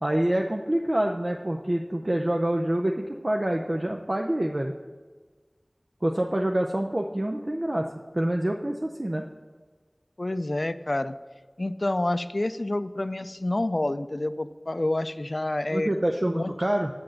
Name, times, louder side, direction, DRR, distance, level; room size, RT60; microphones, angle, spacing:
voice 1, 0.0-4.7 6.0-7.9 8.1-9.3 15.7-16.9, right 1 dB, 45° right, 1 dB, 0.5 m, -26 dB
voice 2, 10.2-11.1 11.6-15.9 16.4-16.5, left 1 dB, 60° left, 13 dB, 0.3 m, -28 dB
7.8 x 5.9 x 6.4 m, 1.4 s
wide cardioid pair, 40°, 0 cm